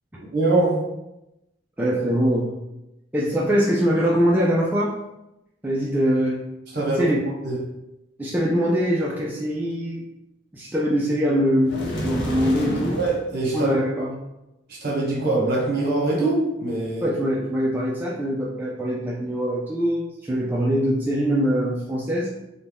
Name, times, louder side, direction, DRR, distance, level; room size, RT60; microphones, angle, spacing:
voice 1, 0.3-0.9 6.7-7.1 7.4-7.6 13.0-13.7 14.7-17.1, right 2 dB, 55° right, -4 dB, 1.0 m, -23 dB
voice 2, 1.8-2.5 3.1-5.0 5.6-6.5 7.0-7.2 8.2-10.0 10.5-13.0 13.5-14.1 17.0-22.3, equal, 10° right, -5 dB, 0.3 m, -23 dB
sound 1, 11.7-13.2, equal, 65° left, 0.6 m, -28 dB
2.6 x 2.2 x 3.3 m, 0.91 s
head